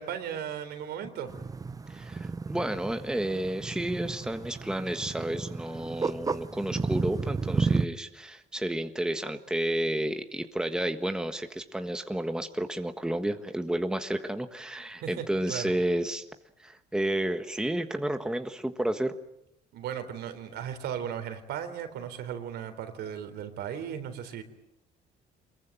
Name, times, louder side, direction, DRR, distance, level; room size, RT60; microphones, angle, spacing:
voice 1, 0.0-1.3 15.0-15.7 19.7-24.4, right 9 dB, 75° right, 3.8 m, -36 dB
sound 1, 1.3-7.9, right 4 dB, 20° right, 0.9 m, -32 dB
voice 2, 1.9-16.2 16.6-19.1, right 1 dB, 5° right, 1.5 m, -31 dB
24.0 x 22.5 x 9.1 m
cardioid pair, 110°, 17 cm